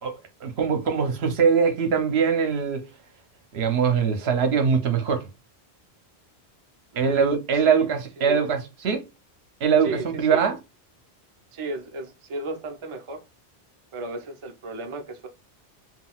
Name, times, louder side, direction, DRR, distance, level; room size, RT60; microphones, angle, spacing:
voice 1, 0.0-2.9 3.5-5.3 7.0-9.0 9.6-10.6, right 6 dB, 75° right, 0.9 m, -22 dB
voice 2, 6.9-7.9 8.2-8.4 9.8-10.5 11.5-13.2 13.9-15.3, right 3 dB, 40° right, 0.5 m, -35 dB
3.7 x 2.2 x 2.3 m
omnidirectional pair, 1.1 m